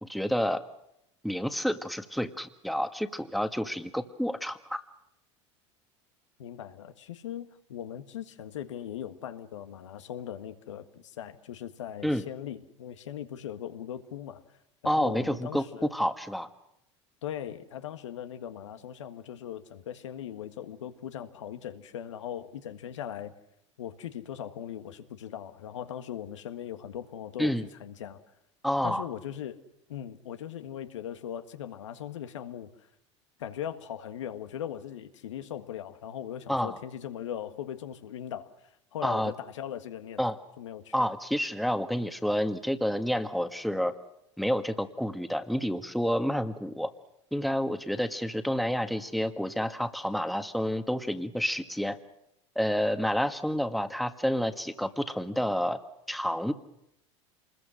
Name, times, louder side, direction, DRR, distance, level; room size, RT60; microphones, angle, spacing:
voice 1, 0.0-0.6 1.2-4.8 12.0-12.2 14.8-16.5 27.4-27.7 28.6-29.1 36.5-36.8 39.0-39.3 40.2-40.4 40.9-43.9 44.4-46.9 47.3-52.0 52.5-55.8 56.1-56.5, equal, ahead, 8 dB, 1.7 m, -29 dB
voice 2, 6.4-14.4 14.8-15.9 17.2-23.3 23.8-27.5 27.8-28.2 28.8-29.6 29.9-32.7 33.4-40.2 40.6-40.9, left 10 dB, 80° left, 8 dB, 1.7 m, -39 dB
27.5 x 21.0 x 6.4 m, 0.80 s
hypercardioid pair, 80°, 15 cm